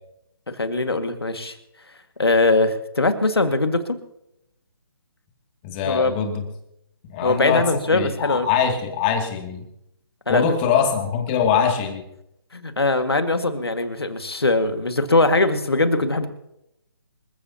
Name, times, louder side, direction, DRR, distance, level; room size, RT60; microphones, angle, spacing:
voice 1, 0.5-1.6 2.2-4.0 5.9-6.2 7.2-8.5 10.3-10.4 12.5-16.3, left 2 dB, 85° left, 8 dB, 1.9 m, -21 dB
voice 2, 5.6-6.4 7.1-9.7 10.3-12.0, left 7 dB, 25° left, 3 dB, 2.5 m, -23 dB
27.0 x 14.5 x 2.9 m, 0.83 s
figure-of-eight pair, 145°, 13 cm